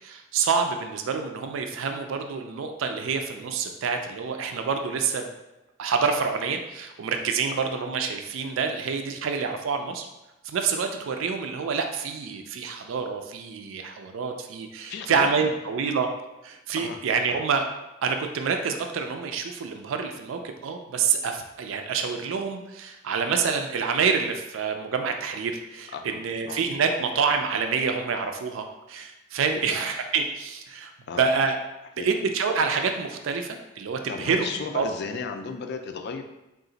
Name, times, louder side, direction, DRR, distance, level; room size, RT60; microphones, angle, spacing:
voice 1, 0.0-5.2 5.8-10.1 10.4-16.1 16.4-17.6 18.0-30.9 31.2-31.6 32.0-34.5 34.7-34.9, right 5 dB, 70° right, 5 dB, 0.4 m, -27 dB
voice 2, 14.9-15.3 16.7-17.0 17.3-17.4 25.9-26.6 29.5-29.8 31.1-31.3 32.0-32.1 34.1-36.2, left 5 dB, 55° left, 5 dB, 0.4 m, -35 dB
3.8 x 2.4 x 3.8 m, 0.99 s
head